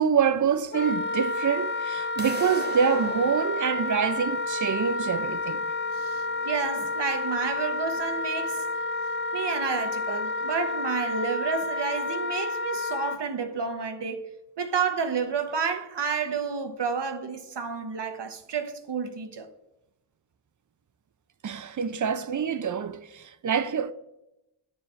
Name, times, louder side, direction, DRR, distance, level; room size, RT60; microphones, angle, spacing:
voice 1, 0.0-5.6 21.4-23.9, right 7 dB, 40° right, 0.5 m, -26 dB
Wind instrument woodwind instrument, 0.7-13.2, left 2 dB, 25° left, 0.3 m, -30 dB
sound 1, 2.2-8.2, right 1 dB, 20° right, 1.4 m, -42 dB
voice 2, 6.0-8.6 9.3-14.3 14.6-19.5, right 5 dB, 60° right, 0.9 m, -30 dB
8.9 x 4.7 x 3.2 m
cardioid pair, 50°, 48 cm